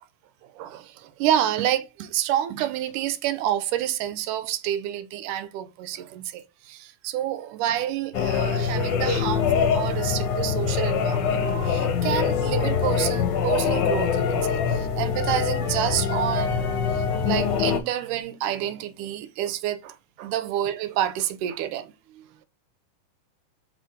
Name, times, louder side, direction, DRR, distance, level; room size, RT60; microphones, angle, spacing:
voice 1, 0.4-22.2, right 11 dB, 90° right, 2.2 m, -28 dB
sound 1, 8.1-17.8, left 6 dB, 75° left, 2.2 m, -24 dB
5.0 x 3.8 x 4.9 m
omnidirectional pair, 3.7 m